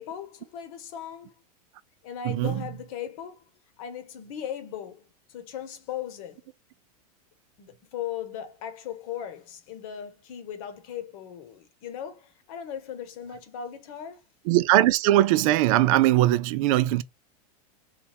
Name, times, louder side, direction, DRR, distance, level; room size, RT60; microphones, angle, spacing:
voice 1, 0.0-1.3 2.0-3.5 3.8-6.4 7.6-14.2, left 9 dB, 60° left, 1.0 m, -38 dB
voice 2, 2.2-2.6 14.5-17.0, right 15 dB, 55° right, 0.4 m, -20 dB
3.3 x 2.3 x 4.1 m
supercardioid pair, 140°, 20 cm